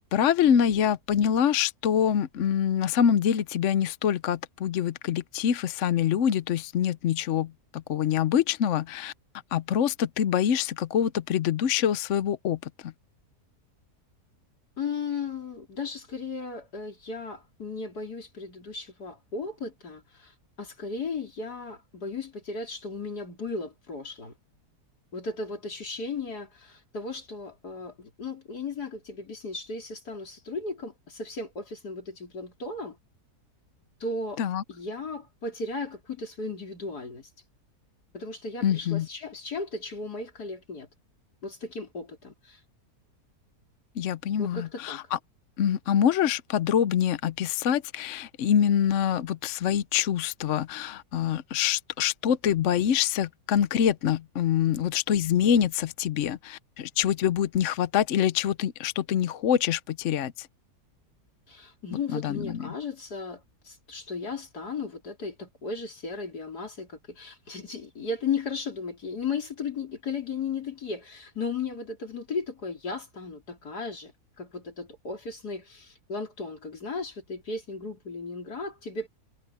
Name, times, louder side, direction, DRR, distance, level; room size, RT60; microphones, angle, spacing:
voice 1, 0.1-9.1 9.5-12.9 34.4-34.6 38.6-39.1 44.0-45.2 45.6-60.5 61.9-62.7, left 9 dB, 60° left, 0.9 m, -25 dB
voice 2, 14.8-20.3 20.6-24.3 25.1-33.0 34.0-34.4 34.7-37.3 38.1-40.9 41.4-42.6 44.4-45.0 61.5-74.1 74.4-79.1, left 4 dB, 80° left, 4.4 m, -35 dB
omnidirectional pair, 1.7 m